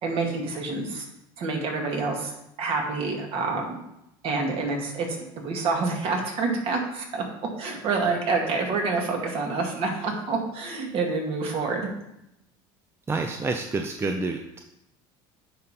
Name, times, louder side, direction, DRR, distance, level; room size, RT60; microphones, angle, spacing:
voice 1, 0.0-1.0 1.4-2.3 2.6-3.8 4.2-7.2 7.6-11.9, right 3 dB, 55° right, 1 dB, 2.0 m, -27 dB
voice 2, 13.1-14.6, right 3 dB, 20° right, 4 dB, 0.6 m, -28 dB
9.8 x 3.7 x 4.3 m, 0.85 s
supercardioid pair, 100°, 12 cm